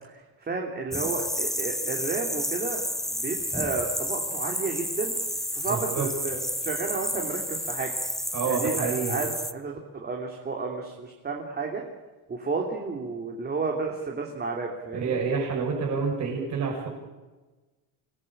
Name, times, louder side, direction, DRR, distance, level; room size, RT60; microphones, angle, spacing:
voice 1, 0.4-2.8 3.1-5.2 5.5-7.9 8.4-11.8 12.3-15.1, right 4 dB, 20° right, 0 dB, 3.1 m, -32 dB
sound 1, 0.9-9.5, equal, ahead, 0.8 m, -31 dB
voice 2, 5.7-6.1 8.3-9.2 14.9-16.9, right 5 dB, 35° right, -1 dB, 6.3 m, -28 dB
25.5 x 18.5 x 8.8 m, 1.2 s
cardioid pair, 150°, 45 cm